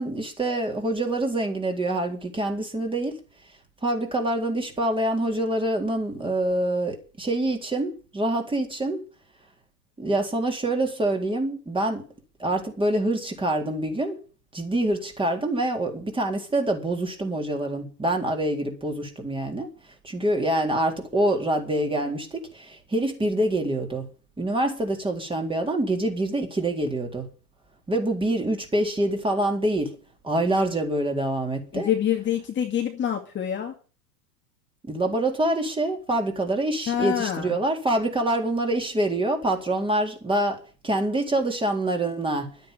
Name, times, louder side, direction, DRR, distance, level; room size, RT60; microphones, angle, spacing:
voice 1, 0.0-3.2 3.8-9.0 10.0-12.0 12.4-14.2 14.5-19.7 20.0-24.1 24.4-27.3 27.9-30.0 30.2-31.9 34.8-42.5, right 1 dB, 10° right, 3.9 m, -26 dB
voice 2, 31.7-33.7 36.9-37.6, left 9 dB, 20° left, 2.4 m, -26 dB
12.0 x 10.0 x 9.1 m
hypercardioid pair, 105°, 49 cm